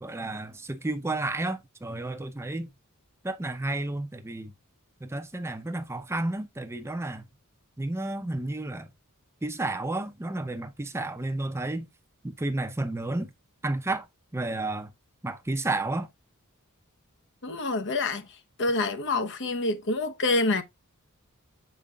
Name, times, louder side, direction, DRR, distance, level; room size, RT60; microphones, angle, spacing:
voice 1, 0.0-2.7 3.2-4.5 5.0-7.2 7.8-8.9 9.4-11.9 12.2-13.3 13.6-14.1 14.3-14.9 15.2-16.1, right 2 dB, 10° right, 0.6 m, -31 dB
voice 2, 17.4-18.3 18.6-20.6, left 2 dB, 55° left, 0.9 m, -27 dB
7.6 x 5.2 x 2.3 m
head